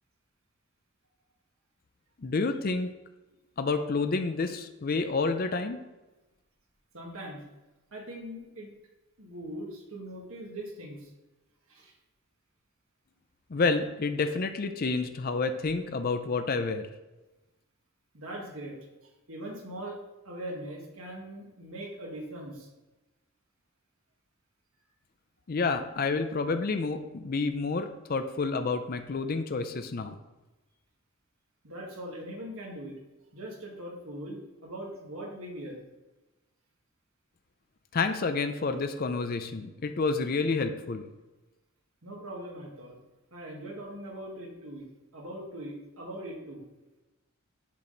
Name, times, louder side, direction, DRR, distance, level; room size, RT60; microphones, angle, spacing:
voice 1, 2.2-2.9 3.6-5.8 13.5-16.9 25.5-30.2 37.9-41.1, left 4 dB, 45° left, 8 dB, 0.5 m, -29 dB
voice 2, 6.9-7.4 7.9-8.7 9.2-11.1 11.7-11.9 18.1-18.8 19.0-20.0 20.2-22.7 31.6-32.9 33.3-35.8 42.0-43.0 43.3-44.9 45.1-46.6, right 1 dB, 80° right, -1 dB, 1.7 m, -41 dB
7.5 x 5.8 x 3.9 m, 1.1 s
head